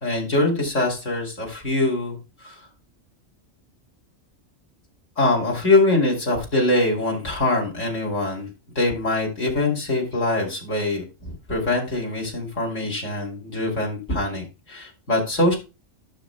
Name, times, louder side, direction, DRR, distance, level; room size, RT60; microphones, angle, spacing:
voice 1, 0.0-2.6 5.2-15.6, left 2 dB, 80° left, -1 dB, 3.1 m, -23 dB
15.0 x 6.3 x 2.2 m, 0.29 s
omnidirectional pair, 1.3 m